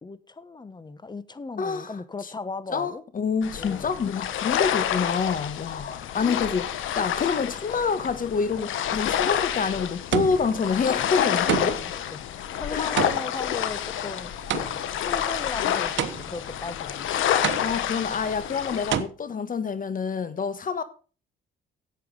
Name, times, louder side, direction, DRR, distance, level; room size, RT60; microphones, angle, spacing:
voice 1, 0.0-3.0 3.6-3.9 11.3-11.5 12.1-14.3 15.0-17.3, left 3 dB, 20° left, 1.1 m, -37 dB
voice 2, 1.6-1.9 2.7-11.8 12.7-12.8 17.6-20.8, left 5 dB, 45° left, 1.4 m, -27 dB
sound 1, 3.4-19.0, left 10 dB, 80° left, 1.3 m, -28 dB
sound 2, 9.1-9.5 10.1-10.7 11.5-12.0 13.0-15.0 16.0-16.6 17.4-18.0 18.9-19.0, right 10 dB, 70° right, 1.2 m, -29 dB
11.5 x 8.3 x 5.3 m
cardioid pair, 90°, 20 cm